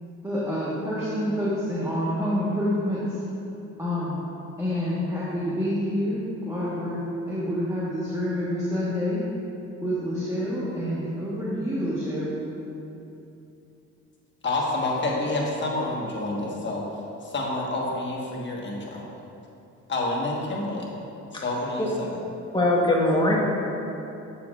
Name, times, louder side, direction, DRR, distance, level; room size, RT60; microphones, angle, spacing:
voice 1, 0.2-3.2 3.8-4.2 4.6-6.2 6.5-7.0 7.3-9.2 9.8-12.3, equal, 10° right, -8 dB, 1.3 m, -27 dB
voice 2, 14.4-16.8 17.2-19.0 19.9-20.9 21.3-22.2, left 2 dB, 40° left, -3 dB, 1.4 m, -28 dB
voice 3, 22.5-23.4, left 1 dB, 15° left, -3 dB, 1.2 m, -21 dB
7.5 x 7.0 x 2.4 m, 2.8 s
cardioid pair, 90°, 30 cm